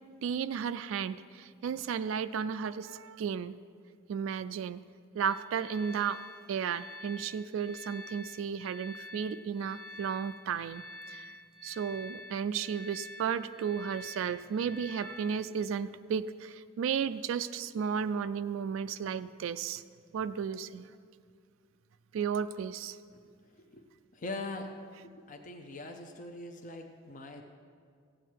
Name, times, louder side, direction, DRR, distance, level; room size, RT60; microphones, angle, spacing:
voice 1, 0.2-3.6 4.1-4.8 5.1-6.2 6.5-10.8 11.1-11.2 11.6-19.8 20.1-20.9 22.1-23.0, right 7 dB, 85° right, 12 dB, 0.3 m, -34 dB
sound 1, 5.2-15.7, left 1 dB, 20° left, 1.0 m, -48 dB
voice 2, 23.1-23.9 24.1-24.7 25.0-27.4, left 2 dB, 40° left, 4 dB, 0.6 m, -42 dB
15.0 x 8.8 x 4.6 m, 2.2 s
head